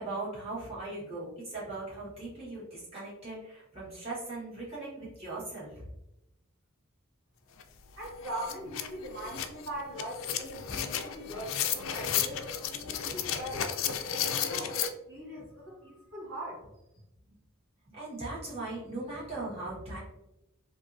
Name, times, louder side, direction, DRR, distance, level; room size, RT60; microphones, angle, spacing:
voice 1, 0.0-5.8 10.7-10.8 12.8-13.2 15.4-15.5 17.9-20.0, right 2 dB, 30° right, -9 dB, 1.4 m, -39 dB
sound 1, 7.6-7.7 8.0-14.9, left 9 dB, 65° left, 0.3 m, -33 dB
voice 2, 8.0-13.7 14.1-16.7, right 1 dB, 70° right, -6 dB, 1.4 m, -41 dB
3.3 x 2.7 x 2.5 m, 0.89 s
head